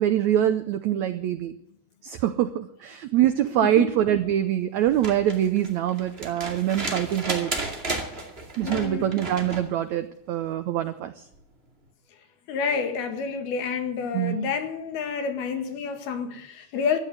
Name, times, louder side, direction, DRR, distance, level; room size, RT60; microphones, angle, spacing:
voice 1, 0.0-1.5 2.0-7.5 8.6-11.2 14.1-14.4, right 11 dB, 90° right, 1.6 m, -24 dB
sound 1, 4.8-9.7 11.3-11.4, right 2 dB, 20° right, 1.8 m, -33 dB
voice 2, 8.6-9.1 12.5-17.0, left 6 dB, 90° left, 3.7 m, -29 dB
14.5 x 10.0 x 9.2 m
omnidirectional pair, 4.3 m